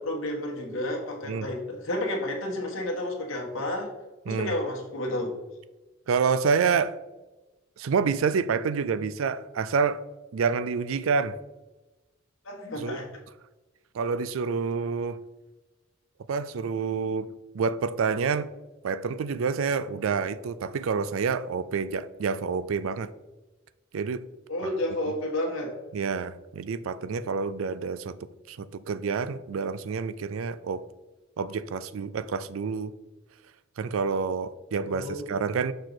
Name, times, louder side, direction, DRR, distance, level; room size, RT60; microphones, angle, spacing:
voice 1, 0.0-3.9 4.2-5.4 12.4-13.1 24.5-25.7 34.9-35.3, left 1 dB, 90° left, 1.4 m, -31 dB
voice 2, 6.1-7.0 7.8-10.0 10.3-11.4 12.8-13.0 13.9-15.2 16.3-18.5 18.8-23.1 23.9-24.2 24.6-24.7 25.9-28.2 28.5-30.8 31.4-32.9 33.8-35.7, right 5 dB, 90° right, 0.4 m, -28 dB
6.6 x 4.6 x 4.0 m
head